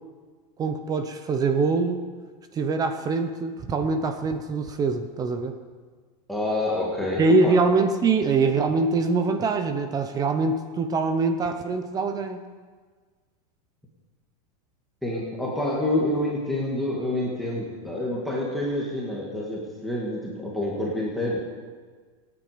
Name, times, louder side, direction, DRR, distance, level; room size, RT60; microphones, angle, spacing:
voice 1, 0.6-2.0 2.5-5.6 7.2-12.4, right 3 dB, 20° right, 8 dB, 0.8 m, -23 dB
voice 2, 6.3-7.6 15.0-21.4, left 1 dB, ahead, -4 dB, 1.9 m, -27 dB
25.5 x 9.6 x 5.1 m, 1.5 s
supercardioid pair, 155°, 20 cm